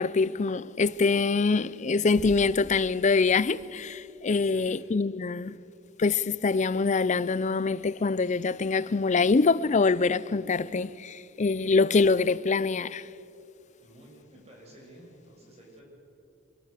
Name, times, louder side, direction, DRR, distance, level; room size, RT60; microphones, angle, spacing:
voice 1, 0.0-5.5 6.0-13.1, left 4 dB, 35° left, 0.5 m, -24 dB
sound 1, 2.2-4.2, equal, 55° left, 5.9 m, -47 dB
voice 2, 4.4-4.8 13.8-15.8, right 1 dB, 35° right, 6.9 m, -52 dB
24.0 x 20.5 x 6.7 m
head